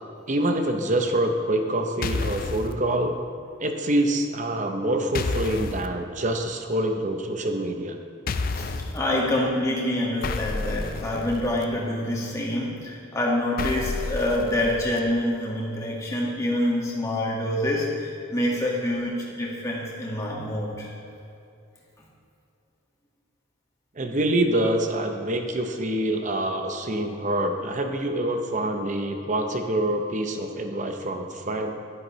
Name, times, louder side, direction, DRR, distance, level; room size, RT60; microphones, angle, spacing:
voice 1, 0.3-3.2 3.6-8.0 24.0-31.7, right 1 dB, 40° right, 5 dB, 0.8 m, -26 dB
sound 1, 2.0-2.7 5.1-5.9 8.3-9.0 10.2-11.6 13.6-15.0, left 3 dB, 45° left, 0.4 m, -30 dB
voice 2, 8.9-20.9, left 1 dB, 15° left, -4 dB, 1.8 m, -26 dB
11.0 x 10.5 x 3.2 m, 2.6 s
head